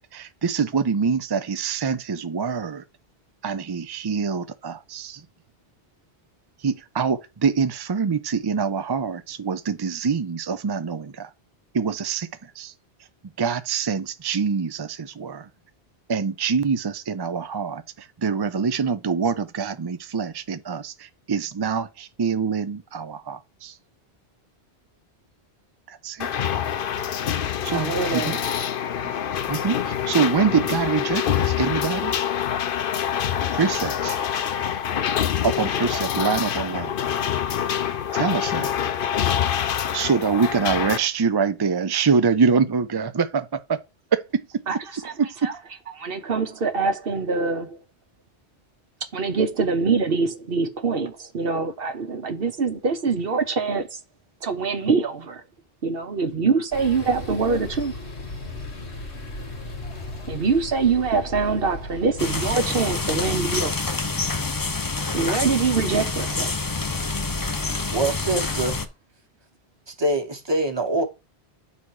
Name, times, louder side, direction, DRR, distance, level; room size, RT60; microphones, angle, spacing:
voice 1, 0.0-2.8 3.4-5.2 6.6-11.3 11.7-12.7 13.4-15.5 16.1-23.8 25.9-26.3 27.6-28.4 29.5-32.1 33.5-34.2 35.4-37.0 38.1-38.8 39.9-43.8 44.1-44.5 45.2-45.5, right 5 dB, 40° right, 0.3 m, -25 dB
sound 1, 26.2-41.0, left 9 dB, 60° left, 0.8 m, -26 dB
voice 2, 27.7-28.4 44.7-44.8 45.0-45.1 45.4-45.5 46.0-47.8 49.1-54.0 54.4-55.4 55.8-57.9 60.3-63.7 65.1-66.5, right 4 dB, 60° right, 1.2 m, -24 dB
sound 2, 56.7-63.3, left 2 dB, 85° left, 2.0 m, -36 dB
sound 3, 62.2-68.9, left 3 dB, 25° left, 0.5 m, -27 dB
voice 3, 67.5-68.9 69.9-71.0, right 2 dB, 25° right, 1.3 m, -25 dB
9.7 x 4.1 x 4.7 m
omnidirectional pair, 1.1 m